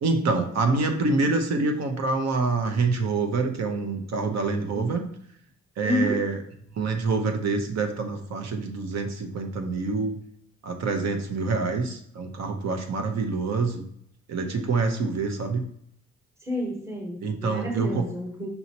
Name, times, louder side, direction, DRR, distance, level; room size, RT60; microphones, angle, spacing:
voice 1, 0.0-5.0 5.8-6.4 6.8-10.1 10.6-13.8 14.3-15.6 17.2-18.1, right 3 dB, 60° right, 6 dB, 0.9 m, -26 dB
voice 2, 5.8-6.3 16.4-18.5, left 1 dB, 10° right, 0 dB, 1.1 m, -29 dB
5.5 x 2.8 x 2.8 m, 0.71 s
cardioid pair, 90°, 30 cm